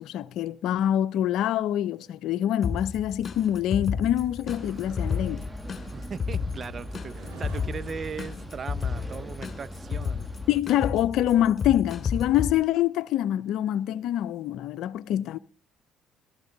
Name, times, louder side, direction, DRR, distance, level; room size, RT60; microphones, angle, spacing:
voice 1, 0.0-5.4 10.5-15.4, left 11 dB, 65° left, 0.7 m, -25 dB
sound 1, 0.9-12.5 12.9-13.2, right 4 dB, 70° right, 7.5 m, -53 dB
sound 2, 2.6-12.5, left 6 dB, 40° left, 2.6 m, -32 dB
sound 3, 4.5-10.6, right 1 dB, 10° right, 1.6 m, -41 dB
voice 2, 5.9-10.3, right 6 dB, 40° right, 0.9 m, -38 dB
19.0 x 13.0 x 4.0 m
hypercardioid pair, 60°, 0 cm